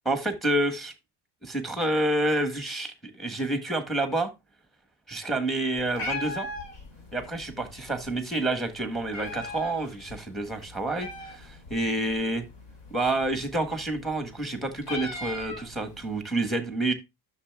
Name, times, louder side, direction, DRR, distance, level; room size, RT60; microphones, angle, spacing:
voice 1, 0.0-0.9 1.4-4.3 5.1-6.5 7.1-12.4 12.9-16.9, right 1 dB, ahead, 1.4 m, -28 dB
Meow, 5.7-16.2, left 2 dB, 60° left, 3.8 m, -40 dB
11.5 x 6.7 x 2.3 m
cardioid pair, 150°, 49 cm